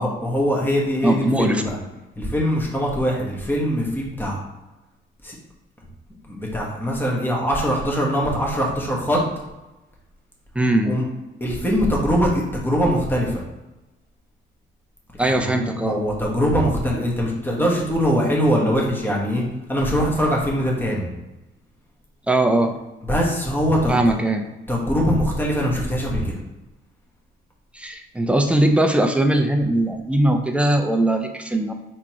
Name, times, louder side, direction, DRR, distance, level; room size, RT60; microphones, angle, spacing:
voice 1, 0.0-1.8 2.2-4.4 5.2-5.4 6.3-9.2 10.8-11.0 11.4-13.4 15.2-19.4 19.7-21.1 23.0-24.2 24.7-26.3, equal, 10° left, -3 dB, 1.3 m, -22 dB
voice 2, 1.0-1.6 10.6-11.0 15.2-16.0 22.3-22.7 23.9-24.5 27.7-31.7, right 1 dB, 5° right, 5 dB, 0.6 m, -20 dB
3.6 x 3.0 x 4.8 m, 1.0 s
cardioid pair, 90°, 20 cm